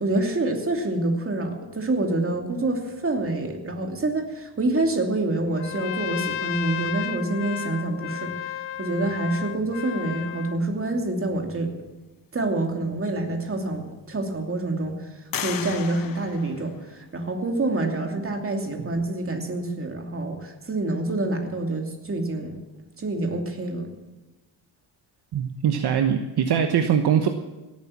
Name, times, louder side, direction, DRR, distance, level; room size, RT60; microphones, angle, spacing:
voice 1, 0.0-11.7 12.3-15.1 15.4-22.6 23.0-23.9, right 2 dB, 30° right, 3 dB, 2.7 m, -27 dB
Trumpet, 5.5-10.6, left 12 dB, 80° left, 0.9 m, -33 dB
sound 1, 13.1-13.2 13.7-14.4 15.3-17.3, left 9 dB, 50° left, 0.9 m, -36 dB
voice 2, 25.3-27.3, right 8 dB, 60° right, 6 dB, 1.2 m, -22 dB
17.5 x 9.1 x 7.3 m, 1.1 s
cardioid pair, 130°, 45 cm